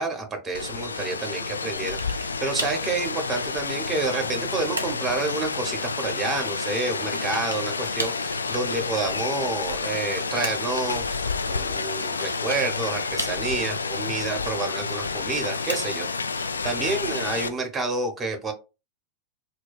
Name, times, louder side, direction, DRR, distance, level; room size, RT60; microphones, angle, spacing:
voice 1, 0.0-16.1 16.3-18.5, right 3 dB, 15° right, 0.8 m, -29 dB
Rain, 0.5-17.5, left 4 dB, 75° left, 0.3 m, -30 dB
sound 1, 1.9-2.3 2.6-2.9 3.5-4.3 4.8-5.1 7.2-7.7 8.0-8.3 9.7-10.8 12.2-12.7 13.2-13.7 15.2-16.1, right 1 dB, 85° right, 0.5 m, -35 dB
2.4 x 2.2 x 3.9 m
figure-of-eight pair, 90°, 0 cm